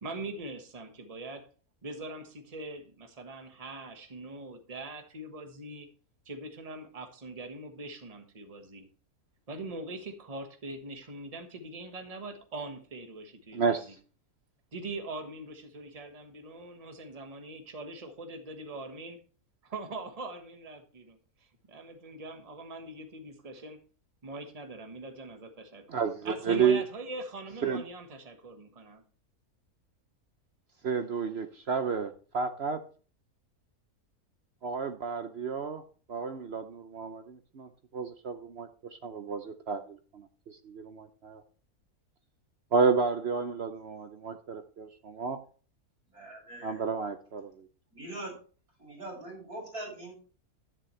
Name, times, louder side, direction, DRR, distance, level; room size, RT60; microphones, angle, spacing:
voice 1, 0.0-1.5 1.8-5.9 6.2-8.8 9.5-13.9 14.7-19.2 19.6-21.2 21.7-23.8 24.2-29.0, right 2 dB, 25° right, 5 dB, 1.4 m, -42 dB
voice 2, 13.5-14.0 25.9-26.8 27.6-27.8 30.8-32.8 34.6-35.8 36.1-41.4 42.7-45.4 46.6-47.7, right 5 dB, 55° right, 9 dB, 0.8 m, -31 dB
voice 3, 46.1-46.8 47.9-48.3 48.8-50.1, right 1 dB, 75° right, -2 dB, 6.9 m, -42 dB
11.0 x 10.0 x 3.2 m, 0.40 s
omnidirectional pair, 1.6 m